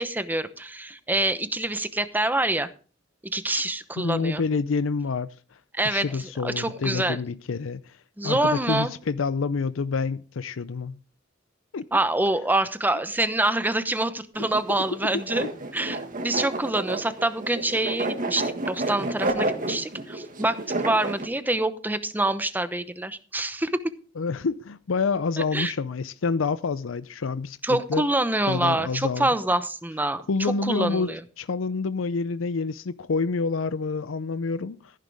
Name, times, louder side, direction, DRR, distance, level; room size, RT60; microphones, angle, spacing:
voice 1, 0.0-2.7 3.3-4.4 5.7-7.2 8.2-8.9 11.9-15.4 15.7-23.7 25.5-25.7 27.6-31.2, right 2 dB, 10° right, 0.9 m, -26 dB
voice 2, 4.0-5.3 5.8-7.9 8.2-11.0 11.7-11.8 24.2-28.0 28.5-29.3 30.3-31.1 31.4-34.9, left 4 dB, 85° left, 0.5 m, -27 dB
sound 1, 14.4-21.2, right 2 dB, 45° right, 1.8 m, -30 dB
14.5 x 10.5 x 3.5 m
head